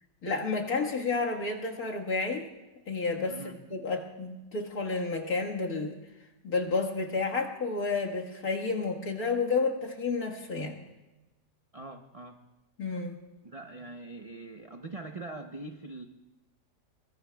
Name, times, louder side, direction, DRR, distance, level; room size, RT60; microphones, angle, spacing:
voice 1, 0.2-2.5 2.9-3.4 3.7-6.0 6.4-10.7 12.8-13.1, left 4 dB, 60° left, 0 dB, 2.1 m, -30 dB
voice 2, 3.3-3.6 11.7-12.4 13.4-16.1, right 2 dB, 45° right, 4 dB, 0.4 m, -42 dB
24.0 x 22.5 x 2.3 m, 1.0 s
omnidirectional pair, 1.8 m